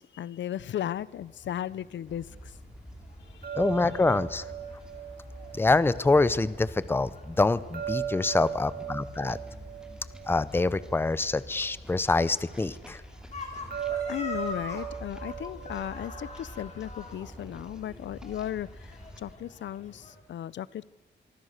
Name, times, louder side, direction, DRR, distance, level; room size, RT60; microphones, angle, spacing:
voice 1, 0.0-2.6 3.3-3.9 13.9-20.9, left 11 dB, 80° left, 0.6 m, -36 dB
sound 1, 0.8-20.1, left 3 dB, 35° left, 4.7 m, -47 dB
sound 2, 2.1-19.4, right 1 dB, 5° right, 2.6 m, -47 dB
sound 3, 3.4-6.5 7.7-11.2 13.7-16.8, right 9 dB, 55° right, 2.0 m, -38 dB
voice 2, 3.5-4.4 5.5-9.4 10.3-13.0, left 3 dB, 10° left, 0.6 m, -25 dB
25.5 x 23.5 x 6.6 m
wide cardioid pair, 170°, 19 cm